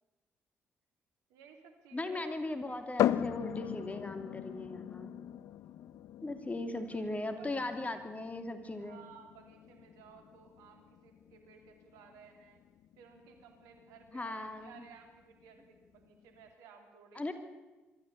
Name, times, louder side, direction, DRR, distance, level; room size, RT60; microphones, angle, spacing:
voice 1, 1.3-2.3 2.7-2.8 6.9-7.0 7.4-8.0 8.8-12.6 13.0-17.3, right 6 dB, 80° right, 4 dB, 3.1 m, -57 dB
voice 2, 1.9-5.1 6.2-9.0 14.1-14.7 17.1-17.3, left 2 dB, 25° left, 8 dB, 2.9 m, -38 dB
sound 1, 3.0-16.5, left 11 dB, 70° left, 0.6 m, -39 dB
23.5 x 13.5 x 8.4 m, 1.2 s
hypercardioid pair, 50°, 6 cm